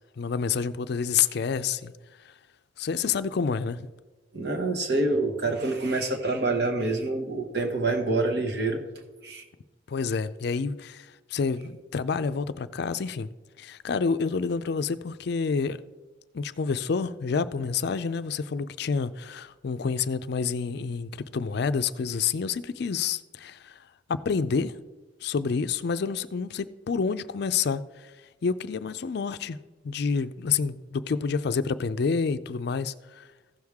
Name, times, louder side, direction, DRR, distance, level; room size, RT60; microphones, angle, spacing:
voice 1, 0.2-1.9 2.3-2.4 2.8-3.9 9.9-13.3 13.6-15.8 16.3-23.8 24.1-24.7 25.2-28.1 28.4-29.6 29.8-33.3, left 5 dB, 60° left, 0.4 m, -28 dB
voice 2, 4.3-8.8 9.2-9.4, right 2 dB, 60° right, 1.3 m, -26 dB
15.0 x 6.4 x 3.5 m
head